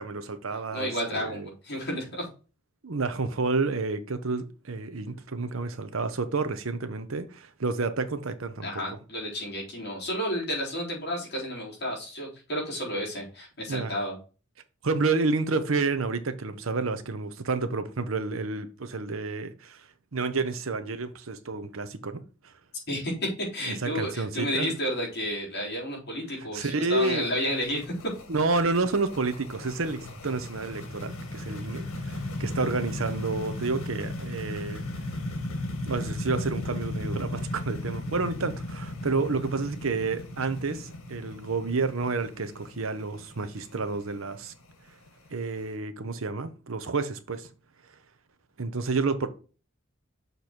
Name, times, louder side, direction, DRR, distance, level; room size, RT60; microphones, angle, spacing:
voice 1, 0.0-1.5 2.8-8.8 13.7-14.0 14.8-19.8 20.1-22.2 23.7-24.7 26.5-27.3 28.3-34.8 35.9-44.5 45.3-47.5 48.6-49.3, right 3 dB, 75° right, 0.8 m, -30 dB
voice 2, 0.7-2.2 8.6-14.2 22.9-27.9, equal, 50° left, 3.8 m, -31 dB
sound 1, 26.9-45.6, left 1 dB, 85° left, 1.8 m, -36 dB
6.8 x 4.0 x 4.5 m
head